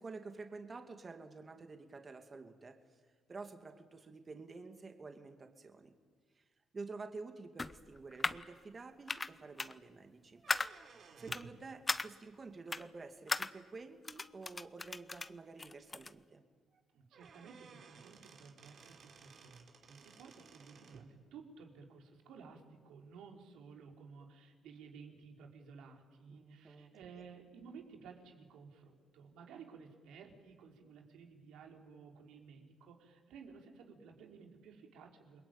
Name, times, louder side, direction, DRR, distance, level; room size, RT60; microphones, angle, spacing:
voice 1, 0.0-2.8 3.3-5.9 6.4-6.5 6.7-10.4 11.2-16.4 26.3-26.9, right 3 dB, 35° right, 6 dB, 2.5 m, -50 dB
sound 1, 7.6-8.5 9.1-9.3 9.6-9.7 10.5-10.7 11.3-11.4 11.9-12.1 12.7-12.8 13.3-13.5 14.1-15.3 15.6-16.1, left 3 dB, 25° left, 0.9 m, -37 dB
sound 2, 10.4-11.6 13.3-13.4 14.3-14.4 14.9-15.0 15.3-15.4 16.7-16.8 17.1-21.1, right 5 dB, 60° right, 4.0 m, -57 dB
voice 2, 16.9-35.4, right 5 dB, 85° right, 2 dB, 4.2 m, -55 dB
29.0 x 22.0 x 9.0 m, 1.5 s
cardioid pair, 90°, 0 cm